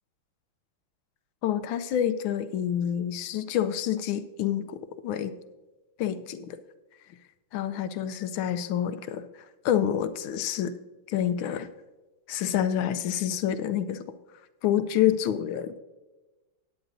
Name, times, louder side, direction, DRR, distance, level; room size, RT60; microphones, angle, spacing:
voice 1, 1.4-4.8 5.0-5.3 6.0-6.6 7.5-9.3 9.6-10.8 11.1-11.7 12.3-14.0 14.6-15.7, left 10 dB, 75° left, 11 dB, 1.3 m, -27 dB
16.5 x 9.7 x 2.6 m, 1.1 s
omnidirectional pair, 2.4 m